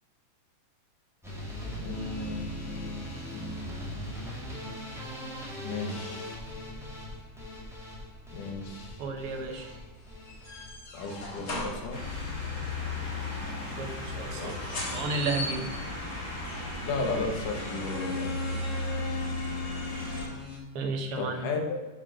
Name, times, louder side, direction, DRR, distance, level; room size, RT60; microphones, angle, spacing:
sound 1, 1.2-13.4 13.7-14.2 14.6-15.1 15.5-15.7 16.0-16.1 16.4-16.5, equal, ahead, 1.2 m, -42 dB
voice 1, 1.8-3.7 5.6-6.4 8.3-9.1 10.9-12.0 14.2-14.5 16.8-18.3 21.2-21.8, left 3 dB, 75° left, 2 dB, 2.8 m, -35 dB
sound 2, 1.9-20.6, left 3 dB, 60° left, 0.7 m, -42 dB
voice 2, 9.0-9.7 13.8-14.5 14.9-15.7 20.7-21.5, right 4 dB, 70° right, 3 dB, 1.3 m, -32 dB
sound 3, 11.9-20.3, left 2 dB, 30° left, 1.8 m, -35 dB
7.2 x 5.1 x 6.1 m, 1.2 s
omnidirectional pair, 3.7 m